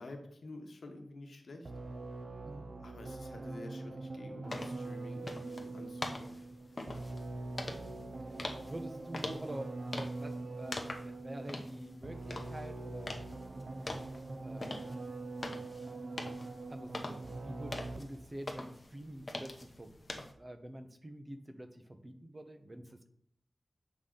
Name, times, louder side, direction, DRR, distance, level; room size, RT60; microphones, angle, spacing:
voice 1, 0.0-1.7 2.8-6.4, left 2 dB, 75° left, 4 dB, 1.2 m, -49 dB
sound 1, 1.6-18.3, right 2 dB, 60° right, 0.7 m, -43 dB
sound 2, 4.5-20.3, left 2 dB, 40° left, 0.9 m, -45 dB
voice 2, 7.5-8.1 8.6-13.2 14.4-14.9 16.7-19.9 20.4-23.1, right 1 dB, 25° right, 6 dB, 0.9 m, -47 dB
8.4 x 5.7 x 3.8 m, 0.67 s
wide cardioid pair, 90°, 0 cm